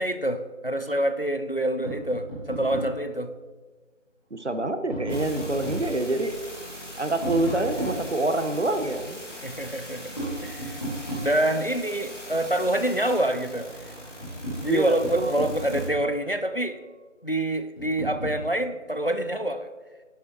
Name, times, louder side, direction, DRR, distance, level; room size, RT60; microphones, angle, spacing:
voice 1, 0.0-3.3 9.4-10.1 10.4-10.8 11.2-13.7 14.6-16.8 17.2-19.7, right 1 dB, 50° left, 10 dB, 0.5 m, -26 dB
Tap, 1.8-3.0 4.4-5.9 7.2-8.7 10.2-11.7 13.5-13.6 14.0-16.2 17.8-18.4, right 1 dB, 25° left, 2.4 m, -34 dB
voice 2, 4.3-6.4 7.0-9.2 14.7-15.3, right 2 dB, 60° right, 9 dB, 0.9 m, -26 dB
sound 1, 5.1-15.9, equal, 70° left, 2.2 m, -41 dB
10.5 x 7.8 x 2.9 m, 1.4 s
figure-of-eight pair, 180°, 38 cm